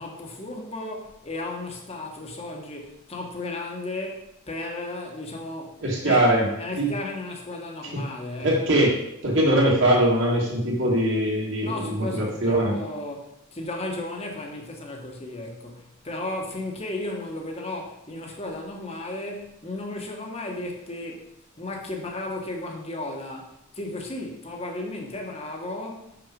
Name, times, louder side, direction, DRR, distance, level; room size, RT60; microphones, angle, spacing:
voice 1, 0.0-6.2 6.6-8.5 9.4-9.6 11.6-21.3 21.6-26.2, left 2 dB, 25° left, 1.3 m, -34 dB
voice 2, 5.8-6.5 6.8-6.9 8.4-9.0 9.2-12.8, right 1 dB, 55° right, 2.4 m, -21 dB
6.4 x 6.0 x 5.3 m
head